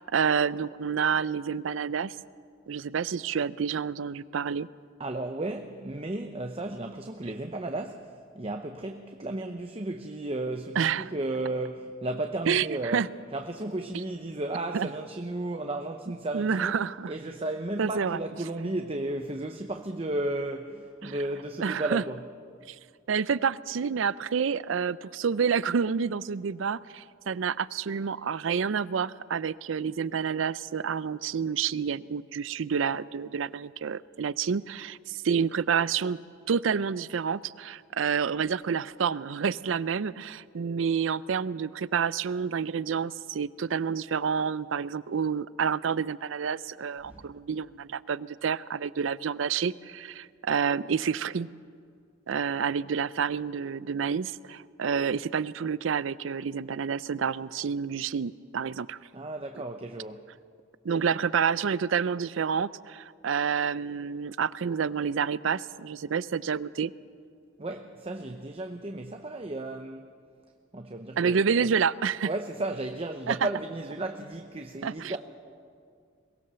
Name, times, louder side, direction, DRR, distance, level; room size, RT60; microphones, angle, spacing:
voice 1, 0.0-2.1 2.7-4.7 10.8-11.1 12.5-13.1 14.7-14.9 16.3-17.1 17.8-18.2 21.0-21.1 21.6-22.0 22.7-22.8 23.1-36.2 36.5-51.5 52.3-59.0 60.8-66.9 71.2-72.3 73.3-73.4 74.8-75.1, right 6 dB, 75° right, 0.5 m, -29 dB
voice 2, 5.0-16.8 17.1-22.2 47.0-47.2 59.1-60.3 67.6-70.1 70.7-71.7 72.3-75.2, right 2 dB, 30° right, 0.8 m, -34 dB
22.5 x 18.0 x 6.9 m
head